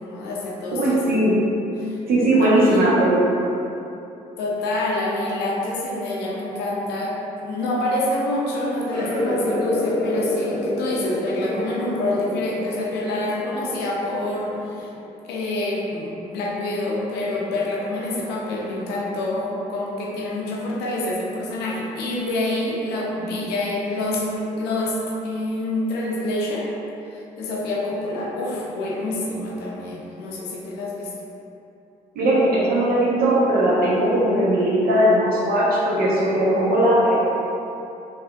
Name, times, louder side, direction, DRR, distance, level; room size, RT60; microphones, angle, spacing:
voice 1, 0.0-1.2 1.8-2.0 2.4-2.8 4.4-14.9 15.2-25.0 25.2-26.7 27.1-31.1, left 2 dB, 85° left, -3 dB, 0.5 m, -27 dB
voice 2, 0.7-1.4 2.1-3.2 32.1-37.2, right 1 dB, 65° right, -6 dB, 0.9 m, -18 dB
sound 1, 8.9-15.1, left 1 dB, 5° left, 1.1 m, -28 dB
3.4 x 2.3 x 2.3 m, 2.8 s
supercardioid pair, 60°, 17 cm